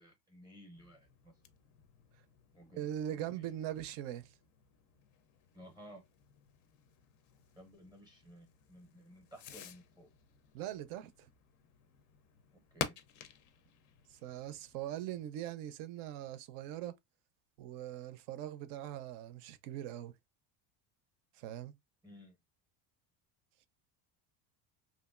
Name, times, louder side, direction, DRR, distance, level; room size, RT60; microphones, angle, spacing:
voice 1, 0.0-1.3 2.5-3.7 5.5-6.0 7.6-10.1 12.5-13.0 22.0-22.4, equal, 10° right, 0.6 m, -56 dB
Fireworks, 0.7-15.3, left 8 dB, 45° left, 0.4 m, -50 dB
voice 2, 2.7-4.3 10.5-11.3 14.1-16.9 17.6-20.1 21.3-21.7, right 12 dB, 70° right, 0.5 m, -41 dB
2.9 x 2.5 x 2.3 m
cardioid pair, 160°, 43 cm